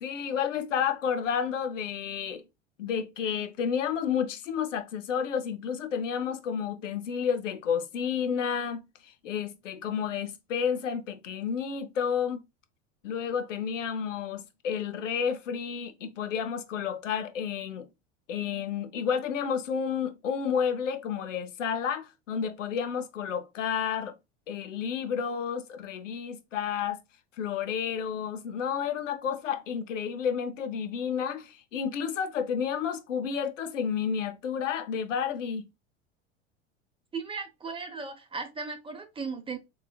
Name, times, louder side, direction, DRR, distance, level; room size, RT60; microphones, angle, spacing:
voice 1, 0.0-2.4 2.8-12.4 13.0-17.9 18.3-24.1 24.5-27.0 27.4-35.6, left 7 dB, 85° left, 0.7 m, -31 dB
voice 2, 37.1-39.6, right 4 dB, 15° right, 0.9 m, -36 dB
3.8 x 3.1 x 2.3 m
hypercardioid pair, 80°, 37 cm